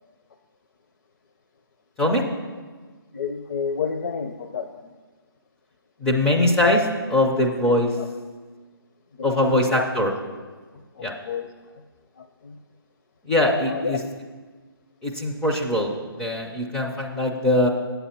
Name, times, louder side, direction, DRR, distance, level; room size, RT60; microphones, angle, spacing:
voice 1, 3.1-4.9 8.0-8.1 9.2-9.9 11.0-11.5 12.2-12.6 13.7-14.1, left 5 dB, 50° left, 7 dB, 0.6 m, -30 dB
voice 2, 6.0-7.9 9.2-10.1 11.0-11.1 13.3-14.0 15.0-15.9 16.2-17.7, left 1 dB, 5° left, -1 dB, 0.4 m, -21 dB
8.6 x 8.1 x 4.3 m, 1.4 s
hypercardioid pair, 155°, 13 cm